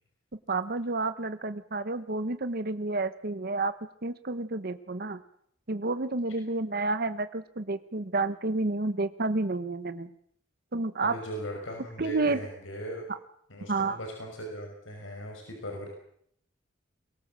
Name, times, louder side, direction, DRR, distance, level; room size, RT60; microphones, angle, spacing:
voice 1, 0.5-3.7 4.0-5.2 5.7-10.1 10.7-11.1 12.0-12.4 13.7-14.0, right 3 dB, 50° right, 11 dB, 1.0 m, -30 dB
voice 2, 11.0-13.1 13.5-15.9, equal, 90° left, 1 dB, 5.7 m, -39 dB
23.0 x 18.0 x 7.4 m, 0.68 s
head